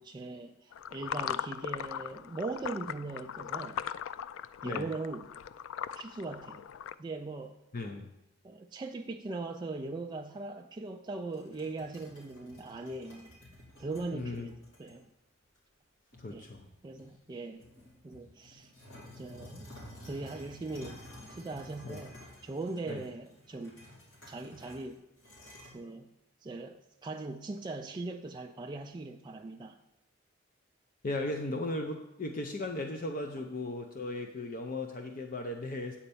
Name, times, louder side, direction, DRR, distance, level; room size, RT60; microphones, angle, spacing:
voice 1, 0.0-3.8 4.6-5.3 6.0-6.6 7.0-7.6 8.4-13.3 13.8-15.1 16.3-16.5 16.8-17.6 18.0-18.7 19.2-19.7 20.1-21.0 21.3-23.8 24.3-25.0 25.7-26.1 26.4-29.8, right 3 dB, 20° right, 3 dB, 0.3 m, -40 dB
sound 1, 0.7-6.9, left 9 dB, 85° left, 0.3 m, -39 dB
voice 2, 7.7-8.1 14.1-14.5 16.2-16.7 21.8-22.0 22.9-23.0 31.0-36.0, left 2 dB, 45° left, 3 dB, 0.6 m, -36 dB
sound 2, 11.3-14.9 15.5-15.6 16.1-17.2 17.6-25.7, left 1 dB, 70° left, 3.1 m, -52 dB
8.8 x 4.3 x 6.8 m, 0.91 s
head